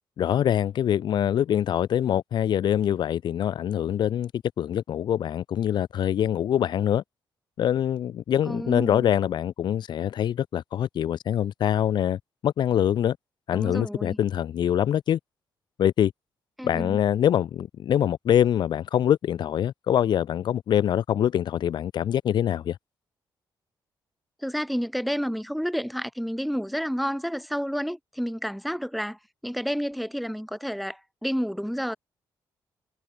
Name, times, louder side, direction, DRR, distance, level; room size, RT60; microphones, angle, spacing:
voice 1, 0.2-7.0 7.6-13.2 13.5-15.2 15.8-16.1 16.6-22.8, left 10 dB, 65° left, 5.3 m, -24 dB
voice 2, 8.5-9.1 13.5-14.2 16.6-17.0 24.4-32.0, equal, ahead, 4.0 m, -30 dB
cardioid pair, 150°, 8 cm